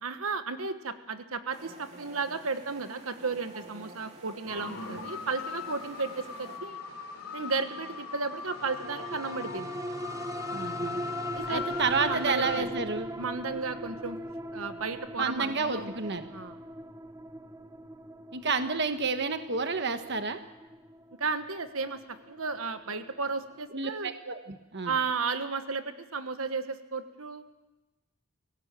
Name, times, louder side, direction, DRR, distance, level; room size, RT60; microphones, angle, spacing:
voice 1, 0.0-6.8 7.3-9.7 11.3-12.7 13.2-14.2 14.5-15.9 16.3-16.6 21.2-24.1 24.8-27.4, right 4 dB, 80° right, 9 dB, 1.4 m, -34 dB
sound 1, 1.5-6.6, right 1 dB, 30° right, 2.4 m, -49 dB
sound 2, 4.5-12.6, left 5 dB, 85° left, 3.1 m, -39 dB
sound 3, 8.5-23.2 23.6-23.7, right 1 dB, 15° right, 0.7 m, -40 dB
voice 2, 10.5-11.0 11.5-13.1 15.2-16.3 18.3-20.4 23.7-24.9, right 4 dB, 55° right, 7 dB, 1.2 m, -30 dB
25.5 x 17.0 x 7.6 m, 1.1 s
head